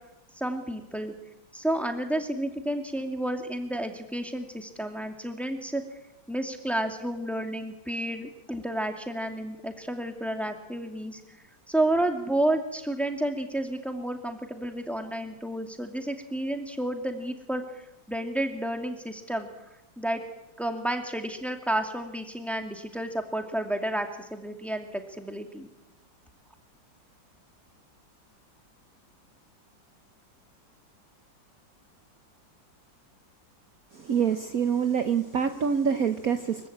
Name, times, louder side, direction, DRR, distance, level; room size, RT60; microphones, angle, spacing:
voice 1, 0.3-1.1 1.5-5.8 6.3-11.2 11.7-19.5 20.0-20.2 20.6-25.7, right 1 dB, ahead, 5 dB, 2.4 m, -31 dB
voice 2, 33.9-36.7, right 7 dB, 55° right, 8 dB, 1.4 m, -26 dB
24.0 x 15.5 x 8.8 m, 0.98 s
omnidirectional pair, 2.0 m